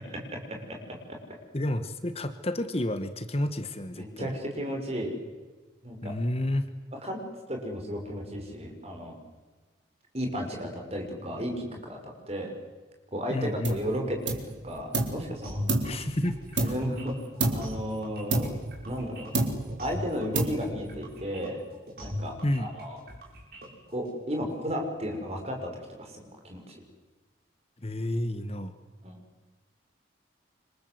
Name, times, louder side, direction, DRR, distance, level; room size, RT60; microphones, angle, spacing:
voice 1, 1.5-4.3 6.0-6.7 13.3-13.8 15.8-16.7 22.4-22.7 27.8-28.7, left 1 dB, 30° left, 10 dB, 1.4 m, -30 dB
voice 2, 3.9-5.1 5.8-6.1 7.0-7.2 7.5-9.2 10.1-12.5 13.1-15.6 16.6-17.1 17.5-18.5 18.8-19.3 19.8-21.6 22.0-23.0 23.9-25.7 26.0-26.8 29.0-29.2, equal, 30° right, 2 dB, 6.3 m, -34 dB
sound 1, 13.6-13.9 14.3-15.2 15.7-17.0 17.4-17.8 18.3-19.1 19.3-19.9 20.3-20.9, right 2 dB, 70° right, 4.3 m, -29 dB
sound 2, 15.4-24.1, left 1 dB, 50° right, 7.3 m, -40 dB
28.5 x 26.0 x 8.0 m, 1.3 s
head